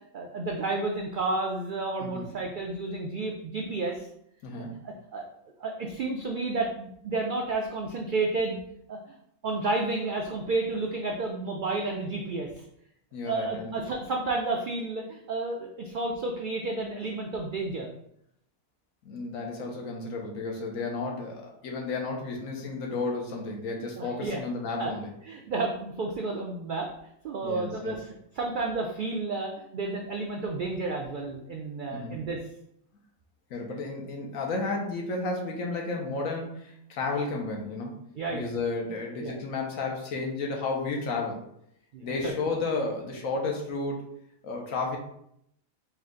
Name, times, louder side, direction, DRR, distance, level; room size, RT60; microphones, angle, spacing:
voice 1, 0.1-4.1 4.8-5.2 5.6-8.6 8.9-9.0 9.4-12.6 13.2-17.9 24.0-24.4 24.8-24.9 25.3-26.9 27.2-32.4 38.2-38.5 39.2-39.3 41.9-42.3, right 3 dB, 85° right, 1 dB, 0.4 m, -31 dB
voice 2, 13.1-13.7 19.0-25.1 27.4-28.0 31.9-32.2 33.5-37.9 38.3-41.4 42.0-44.0 44.4-45.0, left 3 dB, 75° left, 1 dB, 1.2 m, -32 dB
4.4 x 2.4 x 3.7 m, 0.74 s
omnidirectional pair, 1.4 m